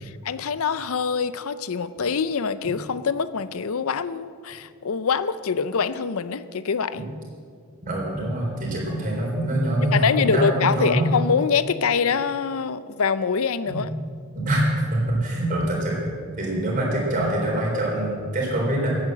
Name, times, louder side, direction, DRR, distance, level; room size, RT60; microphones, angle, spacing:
voice 1, 0.0-7.0 9.9-13.9, left 6 dB, 70° left, 14 dB, 0.5 m, -24 dB
voice 2, 7.8-11.0 13.7-13.8 14.3-16.1 16.4-18.9, right 1 dB, 35° right, -2 dB, 4.0 m, -24 dB
15.5 x 8.8 x 7.6 m, 2.2 s
head